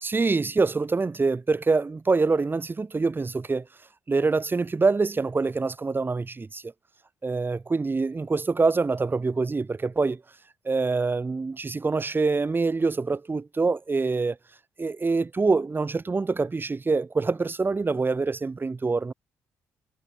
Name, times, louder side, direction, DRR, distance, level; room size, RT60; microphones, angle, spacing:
voice 1, 0.0-3.7 4.1-6.7 7.2-10.2 10.6-14.4 14.8-19.1, right 4 dB, 25° right, 1.0 m, -25 dB
hypercardioid pair, 50°, 8 cm